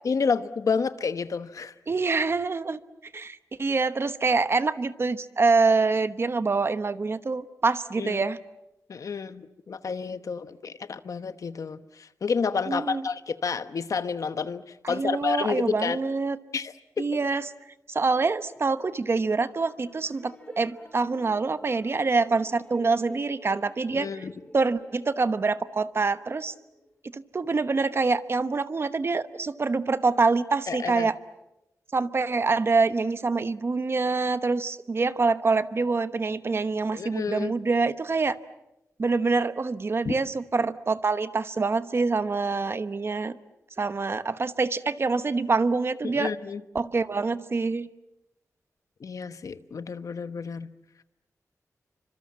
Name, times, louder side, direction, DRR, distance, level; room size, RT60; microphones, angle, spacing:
voice 1, 0.0-1.7 8.0-8.2 8.9-16.0 16.5-17.1 23.9-24.3 30.7-31.1 36.9-37.5 40.0-40.1 46.1-46.6 49.0-50.7, left 5 dB, 65° left, 12 dB, 1.1 m, -30 dB
voice 2, 1.9-2.8 3.1-8.4 12.7-13.1 14.8-16.4 17.0-17.4 17.9-24.1 24.5-26.5 27.1-31.2 31.9-38.3 39.0-43.4 43.8-46.3 46.7-47.9, right 4 dB, 40° right, 12 dB, 1.0 m, -25 dB
sound 1, 18.8-27.0, left 1 dB, 20° left, 4.3 m, -51 dB
29.0 x 25.5 x 7.5 m, 0.93 s
wide cardioid pair, 115°, 6 cm